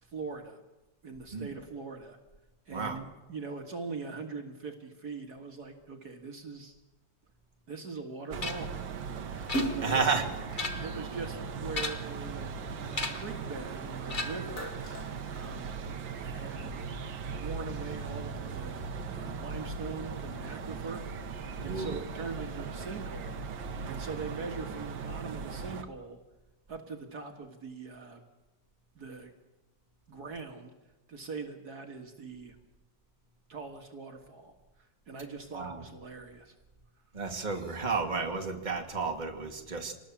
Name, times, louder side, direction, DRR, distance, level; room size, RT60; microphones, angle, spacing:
voice 1, 0.0-0.6 1.0-2.2 2.7-6.8 7.7-8.7 9.3-10.3 10.8-12.6 12.8-14.7 15.2-15.8 16.1-16.9 17.3-21.0 21.6-23.4 23.9-26.2 26.7-28.2 29.0-29.3 30.1-30.7 31.1-32.6 33.5-34.5 34.8-36.5 37.2-37.5, right 4 dB, 55° right, 4 dB, 2.4 m, -42 dB
sound 1, 8.3-25.8, right 5 dB, 75° right, 2.0 m, -39 dB
sound 2, 8.4-8.8 9.5-10.1 10.4-11.0 11.7-12.2 12.9-13.4 14.1-14.6, left 3 dB, 25° left, 1.5 m, -36 dB
Splash splatter, 9.4-12.0 12.5-13.9 14.3-16.0, right 1 dB, 45° left, 3.5 m, -37 dB
voice 2, 9.8-10.2 21.6-22.0 35.5-35.8 37.1-39.9, right 4 dB, 25° right, 2 dB, 2.4 m, -31 dB
26.0 x 19.5 x 7.3 m, 1.1 s
omnidirectional pair, 2.0 m